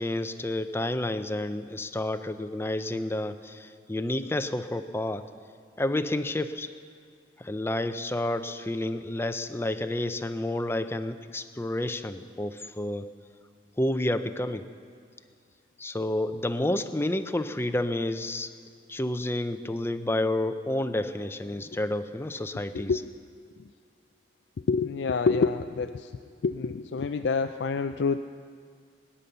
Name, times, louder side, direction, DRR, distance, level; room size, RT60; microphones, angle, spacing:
voice 1, 0.0-5.3 5.8-6.7 7.4-13.1 13.8-14.6 15.8-18.5 18.9-22.9, left 1 dB, 15° left, 10 dB, 0.6 m, -30 dB
voice 2, 24.7-26.1 26.4-28.2, left 4 dB, 85° left, 8 dB, 0.4 m, -27 dB
21.0 x 10.0 x 6.8 m, 2.1 s
head